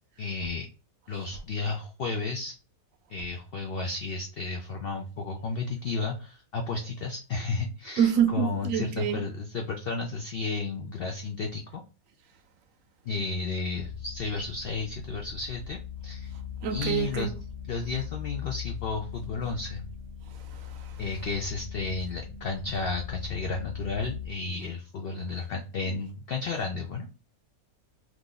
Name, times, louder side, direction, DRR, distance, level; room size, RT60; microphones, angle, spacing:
voice 1, 0.2-0.7 1.1-2.5 3.1-11.8 13.1-16.4 16.7-17.3 17.7-19.8 21.0-27.1, left 4 dB, 70° left, 0.5 m, -33 dB
voice 2, 8.0-9.2 16.6-17.4 20.3-21.0, right 8 dB, 70° right, 0.9 m, -27 dB
sound 1, 13.7-24.3, left 8 dB, 20° left, 1.0 m, -40 dB
2.9 x 2.5 x 3.7 m
omnidirectional pair, 1.5 m